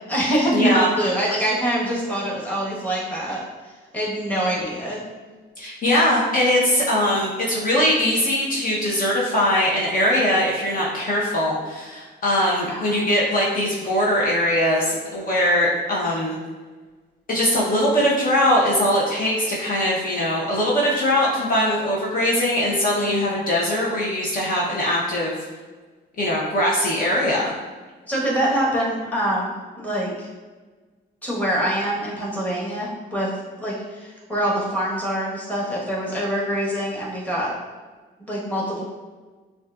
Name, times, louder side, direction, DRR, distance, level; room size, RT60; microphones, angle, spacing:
voice 1, 0.0-3.4 3.9-5.0 12.6-13.0 28.1-30.3 31.2-33.3 33.6-37.5 38.2-38.8, right 1 dB, 5° left, -5 dB, 1.4 m, -24 dB
voice 2, 0.5-0.9 5.6-16.4 17.3-25.4 26.2-27.5, left 1 dB, 45° left, -5 dB, 1.0 m, -21 dB
6.1 x 2.5 x 2.5 m, 1.3 s
cardioid pair, 90°, 20 cm